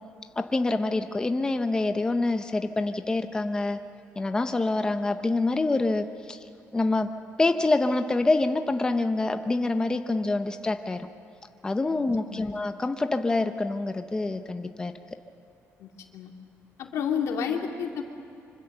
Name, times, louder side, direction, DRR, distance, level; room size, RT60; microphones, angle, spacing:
voice 1, 0.4-3.8 4.2-6.4 6.7-7.1 7.4-11.1 11.6-14.9, left 2 dB, 15° left, 7 dB, 0.7 m, -26 dB
voice 2, 11.9-12.5 15.8-16.3 16.8-18.0, left 7 dB, 80° left, 2 dB, 2.6 m, -31 dB
25.5 x 25.0 x 6.8 m, 2.7 s
cardioid pair, 140°, 5 cm